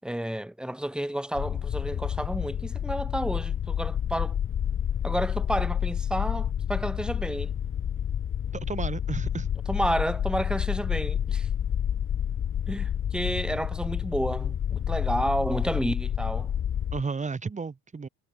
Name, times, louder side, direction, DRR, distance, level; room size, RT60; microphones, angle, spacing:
voice 1, 0.0-4.4 5.0-7.5 9.7-11.5 12.7-16.5, right 1 dB, ahead, 4.7 m, -31 dB
sound 1, 1.3-17.0, left 9 dB, 30° left, 2.1 m, -29 dB
voice 2, 8.5-9.5 16.9-18.1, right 4 dB, 20° right, 5.7 m, -33 dB
cardioid pair, 140°, 40 cm